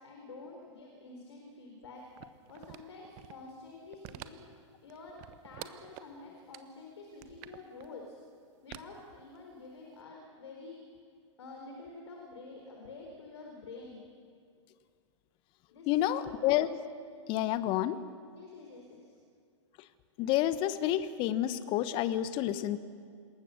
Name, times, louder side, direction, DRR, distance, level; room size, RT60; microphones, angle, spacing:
voice 1, 0.0-2.1 2.5-4.5 4.8-5.2 5.4-8.2 8.6-10.8 11.4-14.0 15.7-16.3 18.3-19.2, left 3 dB, 60° left, 1 dB, 4.4 m, -48 dB
sound 1, 2.2-3.5 3.9-4.6 4.9-6.1 6.5-6.6 7.1-7.9 8.7-9.7 10.0-10.1, right 16 dB, 35° right, 1.2 m, -47 dB
voice 2, 15.9-16.7 17.3-18.0 20.2-22.8, left 13 dB, 30° left, 14 dB, 1.2 m, -29 dB
27.0 x 21.5 x 6.6 m, 2.2 s
figure-of-eight pair, 105°, 16 cm